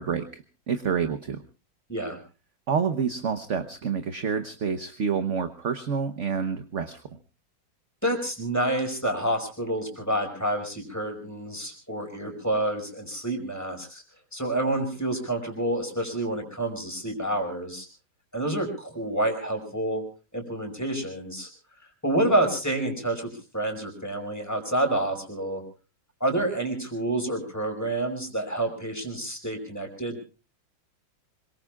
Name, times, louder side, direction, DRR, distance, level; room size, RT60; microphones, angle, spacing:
voice 1, 0.0-1.4 2.7-7.0, right 6 dB, 50° right, 8 dB, 1.1 m, -28 dB
voice 2, 8.0-14.0 14.3-17.9 18.3-20.0 20.3-21.5 22.0-25.6 26.2-30.2, right 1 dB, 10° left, 3 dB, 5.1 m, -28 dB
26.0 x 23.0 x 2.4 m, 0.34 s
omnidirectional pair, 2.1 m